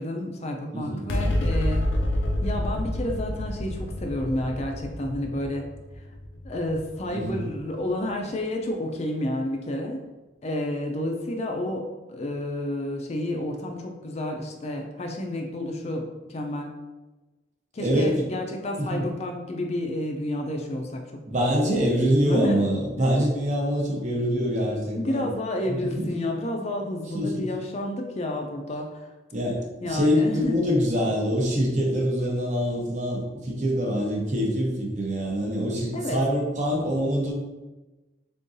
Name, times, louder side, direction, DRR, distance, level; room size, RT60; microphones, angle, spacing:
voice 1, 0.0-1.8 2.4-5.7 6.0-6.1 6.4-10.0 10.4-16.7 17.7-21.0 21.7-22.6 25.0-29.1 29.8-30.6 35.9-36.2, left 1 dB, 35° left, 2 dB, 0.4 m, -30 dB
sound 1, 1.1-7.8, left 1 dB, 90° left, 0.5 m, -28 dB
voice 2, 17.8-18.2 18.8-19.0 21.2-25.3 25.7-26.1 27.1-27.5 29.3-37.3, equal, 40° right, -1 dB, 0.8 m, -25 dB
3.7 x 3.7 x 2.6 m, 1.1 s
head